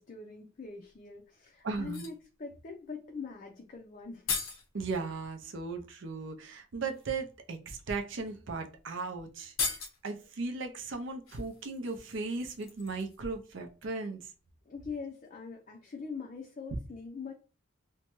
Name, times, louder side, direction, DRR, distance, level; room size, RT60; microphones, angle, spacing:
voice 1, 0.0-4.4 14.6-17.3, left 4 dB, 40° left, 0.4 m, -43 dB
sound 1, 0.9-1.0 1.8-2.2 3.7-3.8 4.0-4.7 6.1-6.2 6.8-7.0 7.9-8.0 8.4-8.5 8.8-8.9 9.4-10.2 11.3-13.3 13.6-13.7, left 5 dB, 85° left, 0.6 m, -38 dB
voice 2, 1.6-2.0 4.7-9.5 10.0-14.3, right 3 dB, 65° right, 0.5 m, -37 dB
2.6 x 2.1 x 2.9 m
head